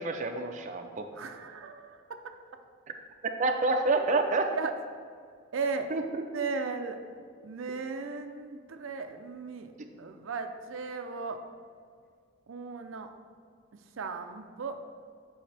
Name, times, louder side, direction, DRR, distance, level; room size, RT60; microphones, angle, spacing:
voice 1, 0.0-1.1 3.2-4.5 5.9-6.5, right 3 dB, 40° right, 4 dB, 0.5 m, -28 dB
voice 2, 1.1-2.0 4.5-4.7 5.5-5.9 6.3-7.0 7.4-9.7 10.0-11.4 12.5-13.1 13.7-14.8, right 4 dB, 90° right, 6 dB, 0.5 m, -36 dB
8.6 x 5.4 x 3.3 m, 2.1 s
head